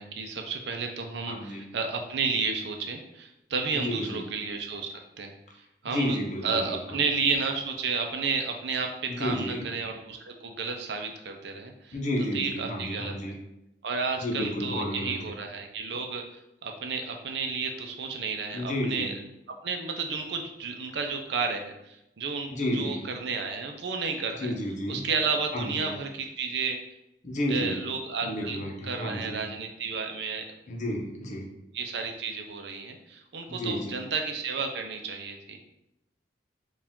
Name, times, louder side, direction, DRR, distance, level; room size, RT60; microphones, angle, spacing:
voice 1, 0.0-5.3 5.8-6.2 6.4-12.0 12.3-13.1 13.8-16.2 16.6-19.1 19.6-24.5 24.9-26.8 27.5-28.6 28.8-30.4 31.7-35.6, right 5 dB, 70° right, 3 dB, 0.5 m, -32 dB
voice 2, 1.3-1.6 3.7-4.2 5.9-7.0 9.1-9.6 11.9-13.3 14.2-15.1 18.5-19.1 22.5-23.0 24.4-25.0 25.5-25.9 27.2-27.8 28.2-29.4 30.7-31.5 33.5-34.0, left 1 dB, 40° left, 0 dB, 0.8 m, -31 dB
4.6 x 2.4 x 3.6 m, 0.87 s
head